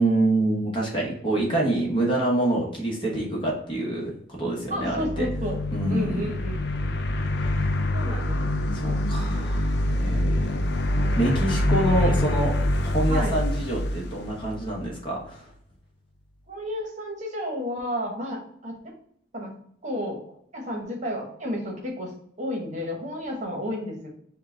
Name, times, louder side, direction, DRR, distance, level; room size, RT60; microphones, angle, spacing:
voice 1, 0.0-5.3 5.7-6.3 7.5-7.7 8.7-10.6 11.2-15.5, right 1 dB, 25° left, -2 dB, 1.1 m, -26 dB
sound 1, 4.7-15.0, left 1 dB, 60° left, 0.5 m, -25 dB
voice 2, 4.7-5.6 5.9-6.7 7.9-8.5 9.2-9.5 10.0-10.5 10.8-11.2 11.9-12.2 13.1-13.4 16.5-18.9 19.3-19.5 19.8-20.2 20.5-22.1 22.4-24.1, equal, 40° right, 0 dB, 1.0 m, -32 dB
5.5 x 2.3 x 3.7 m, 0.67 s
head